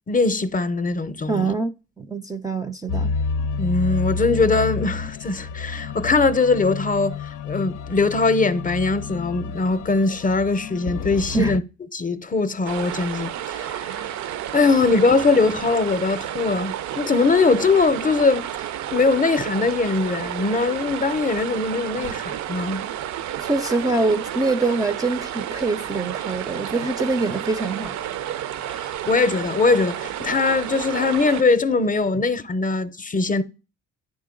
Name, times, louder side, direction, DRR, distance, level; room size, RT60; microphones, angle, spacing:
voice 1, 0.1-1.5 3.6-11.6 11.9-13.8 14.5-18.5 18.9-22.8 28.7-33.4, left 3 dB, 25° left, 0.6 m, -21 dB
voice 2, 1.3-3.2 11.3-11.6 23.4-28.0, right 3 dB, 15° right, 0.4 m, -24 dB
sound 1, 2.9-11.6, left 5 dB, 85° left, 0.6 m, -29 dB
sound 2, 12.6-31.4, right 11 dB, 70° right, 0.5 m, -31 dB
9.3 x 3.8 x 3.7 m
cardioid pair, 90°, 30 cm